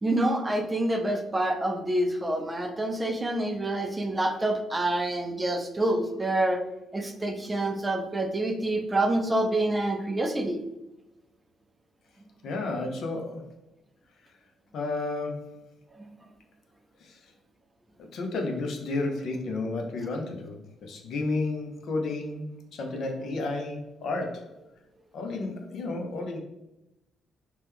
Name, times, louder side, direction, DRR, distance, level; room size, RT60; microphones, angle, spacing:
voice 1, 0.0-6.6 6.9-10.6 16.1-16.2, right 1 dB, 20° right, 5 dB, 0.5 m, -27 dB
voice 2, 12.4-13.4 14.7-15.6 17.0-17.2 18.0-24.4 25.1-26.4, left 2 dB, 70° left, 3 dB, 0.6 m, -32 dB
2.9 x 2.2 x 3.4 m, 0.96 s
cardioid pair, 90°, 0 cm